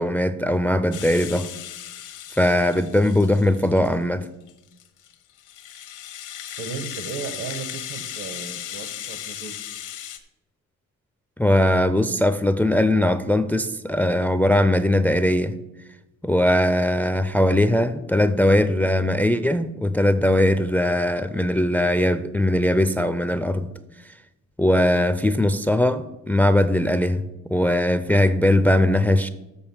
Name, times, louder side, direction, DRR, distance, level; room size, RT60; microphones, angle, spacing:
voice 1, 0.0-1.5 2.4-4.3 11.4-15.5 16.2-23.7 24.6-27.2 27.5-29.3, left 1 dB, 5° left, 12 dB, 0.4 m, -20 dB
Rattle (instrument), 0.9-4.0 4.5-10.2, left 11 dB, 80° left, 1.1 m, -36 dB
voice 2, 6.6-9.5, right 5 dB, 65° right, 11 dB, 1.2 m, -35 dB
7.1 x 6.1 x 7.2 m, 0.97 s
cardioid pair, 90°, 30 cm